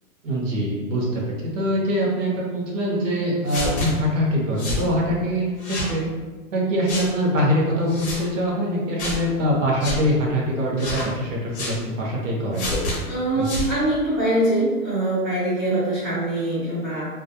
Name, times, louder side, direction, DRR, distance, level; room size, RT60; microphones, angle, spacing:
voice 1, 0.2-1.2 1.5-6.0 6.5-12.7 13.4-13.5, equal, 55° right, -3 dB, 0.8 m, -23 dB
sound 1, 3.5-3.9 4.6-4.9 5.6-5.9 6.9-7.1 7.9-8.2 9.0-9.2 9.8-10.0 10.8-11.1 11.5-11.8 12.5-13.0 13.4-13.7, left 2 dB, 45° left, 0.7 m, -28 dB
voice 2, 13.1-17.0, right 1 dB, ahead, -23 dB, 0.5 m, -23 dB
2.3 x 2.1 x 2.6 m, 1.3 s
hypercardioid pair, 165°, 45 cm